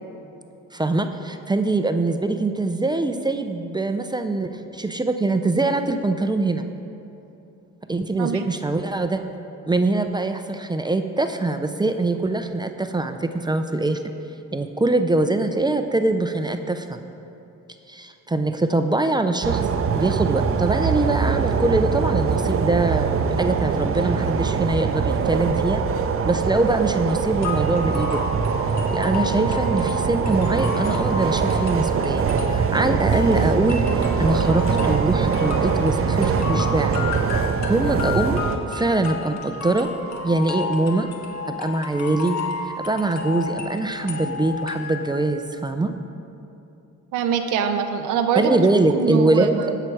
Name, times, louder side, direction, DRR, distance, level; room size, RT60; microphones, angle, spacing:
voice 1, 0.7-6.6 7.9-9.2 9.7-14.0 14.5-17.0 17.9-19.7 19.9-23.1 23.4-25.8 26.3-28.2 28.9-37.0 37.7-38.4 38.7-39.9 40.2-41.1 41.5-42.4 42.6-45.9 48.4-49.6, right 2 dB, 15° right, 7 dB, 0.5 m, -23 dB
sound 1, 19.4-38.6, right 6 dB, 50° right, 0.7 m, -23 dB
sound 2, 27.4-45.3, left 4 dB, 65° left, 1.3 m, -32 dB
voice 2, 47.1-48.6 48.9-49.8, right 7 dB, 85° right, 6 dB, 0.7 m, -24 dB
16.0 x 5.9 x 4.6 m, 2.8 s
cardioid pair, 90°, 30 cm